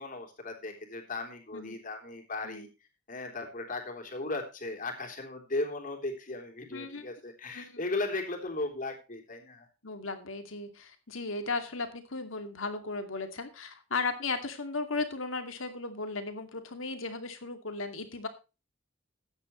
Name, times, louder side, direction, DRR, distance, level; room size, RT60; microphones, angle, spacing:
voice 1, 0.0-2.7 3.1-9.7, left 2 dB, 45° left, 4 dB, 3.5 m, -36 dB
voice 2, 6.7-7.0 7.5-7.8 9.8-18.3, left 3 dB, 90° left, 7 dB, 2.4 m, -36 dB
14.5 x 9.9 x 3.1 m, 0.29 s
head